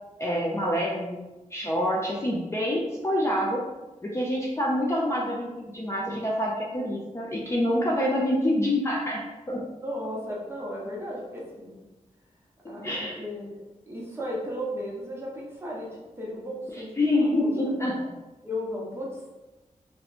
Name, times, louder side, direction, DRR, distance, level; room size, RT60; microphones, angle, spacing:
voice 1, 0.2-1.2 1.5-3.6 4.0-5.5 5.7-9.6 12.8-13.2 17.0-17.9, left 1 dB, 20° left, -4 dB, 0.4 m, -26 dB
voice 2, 9.6-11.8 12.7-13.6 13.9-17.8 18.4-19.3, equal, 20° right, -4 dB, 0.8 m, -35 dB
2.8 x 2.2 x 4.1 m, 1.1 s
wide cardioid pair, 145°, 13 cm